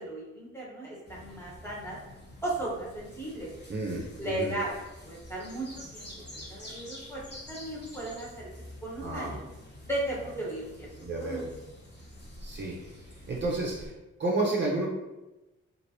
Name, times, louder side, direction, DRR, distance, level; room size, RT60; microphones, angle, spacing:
voice 1, 0.0-2.0 2.4-3.5 4.2-4.7 5.0-7.2 7.5-8.5 8.8-9.5 9.9-10.9 11.2-11.4, right 1 dB, 10° left, -5 dB, 1.2 m, -36 dB
sound 1, 1.1-13.9, left 1 dB, 35° left, 1.0 m, -47 dB
voice 2, 3.7-4.5 9.0-9.4 11.0-11.4 12.4-12.8 13.3-13.9 14.2-14.9, right 2 dB, 35° right, -3 dB, 0.6 m, -31 dB
3.0 x 2.5 x 2.8 m, 1.0 s
cardioid pair, 65°, 31 cm